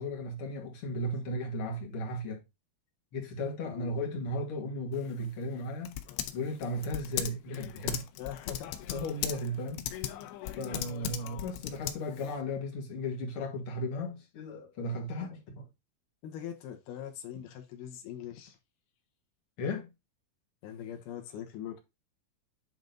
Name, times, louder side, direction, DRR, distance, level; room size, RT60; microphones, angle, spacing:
voice 1, 0.0-2.4 3.1-6.0 6.3-8.0 8.9-9.9 10.6-15.7 19.6-19.9, left 1 dB, 45° left, 2.2 m, -35 dB
Typing, 4.9-12.4, left 12 dB, 90° left, 2.9 m, -39 dB
voice 2, 8.2-8.8 16.2-18.6 20.6-21.8, left 10 dB, 75° left, 2.9 m, -42 dB
9.0 x 3.5 x 3.9 m
omnidirectional pair, 4.7 m